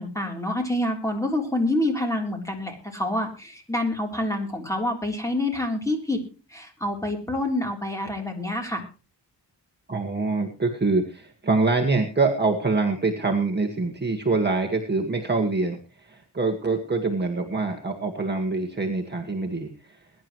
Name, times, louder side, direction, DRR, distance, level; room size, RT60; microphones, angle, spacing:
voice 1, 0.0-6.2 6.5-8.8, left 1 dB, 5° left, 2 dB, 3.6 m, -27 dB
voice 2, 9.9-20.0, right 3 dB, 25° right, 1 dB, 1.8 m, -25 dB
21.5 x 11.0 x 3.1 m, 0.34 s
wide cardioid pair, 130°, 41 cm